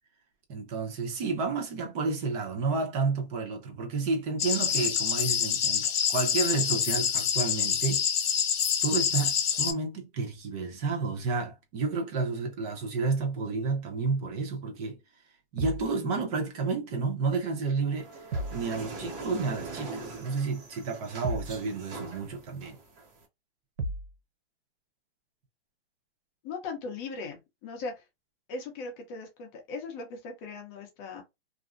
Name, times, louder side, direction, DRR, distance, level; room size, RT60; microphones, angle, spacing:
voice 1, 0.5-8.0 8.8-15.0 15.5-18.1 18.5-22.8, right 4 dB, 35° right, 0.7 m, -31 dB
sound 1, 4.4-9.7, left 8 dB, 60° left, 0.7 m, -27 dB
sound 2, 15.6-15.9 18.3-18.7 21.2-21.6 23.8-24.2, right 1 dB, 85° right, 0.7 m, -33 dB
sound 3, 18.0-23.2, right 3 dB, 55° right, 1.2 m, -42 dB
voice 2, 26.4-28.0 28.5-31.2, left 4 dB, 30° left, 0.6 m, -39 dB
2.6 x 2.1 x 2.4 m
hypercardioid pair, 145°, 33 cm